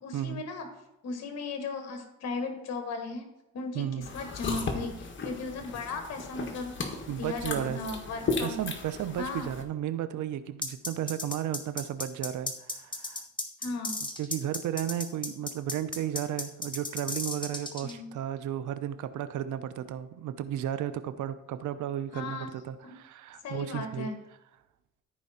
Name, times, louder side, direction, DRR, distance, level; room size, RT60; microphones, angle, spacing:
voice 1, 0.0-0.7 1.0-3.3 3.5-6.8 7.1-8.7 9.2-9.5 13.6-14.0 17.8-18.1 22.1-22.5 22.8-22.9 23.4-24.2, left 3 dB, 60° left, 5 dB, 1.5 m, -36 dB
voice 2, 3.7-4.1 7.1-7.8 8.1-13.2 14.2-24.1, right 10 dB, 75° right, 12 dB, 0.8 m, -34 dB
sound 1, 4.0-9.6, left 4 dB, 40° left, 1.7 m, -36 dB
sound 2, 10.6-17.9, left 2 dB, 15° left, 1.5 m, -34 dB
14.0 x 4.7 x 4.3 m, 0.89 s
cardioid pair, 90°, 30 cm